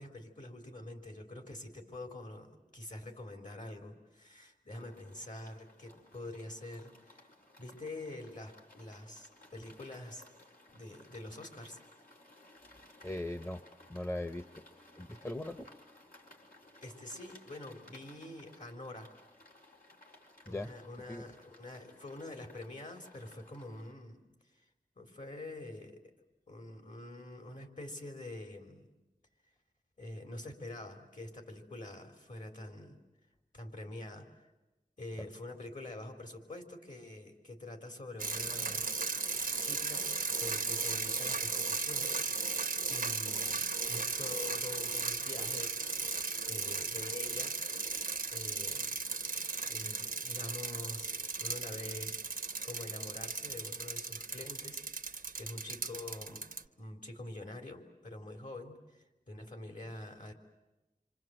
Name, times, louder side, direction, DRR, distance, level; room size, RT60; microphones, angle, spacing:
voice 1, 0.0-7.3 7.6-10.3 10.7-11.8 16.8-19.1 20.5-24.2 25.0-26.0 26.5-28.9 30.0-33.0 33.5-34.3 35.0-38.8 39.6-40.1 40.4-42.1 42.9-45.8 46.5-47.6 48.3-49.0 49.7-54.8 55.4-56.5 56.8-60.3, left 2 dB, 60° left, 3 dB, 3.8 m, -46 dB
sound 1, 4.7-23.9, left 1 dB, 85° left, 4.2 m, -59 dB
voice 2, 13.0-13.6 13.9-14.5 15.0-15.7 20.5-20.7 21.1-21.2, left 1 dB, 20° left, 8 dB, 0.9 m, -39 dB
sound 2, 38.2-56.6, right 4 dB, 80° right, 0.9 m, -36 dB
27.0 x 26.0 x 7.8 m, 1.0 s
wide cardioid pair, 45°, 15 cm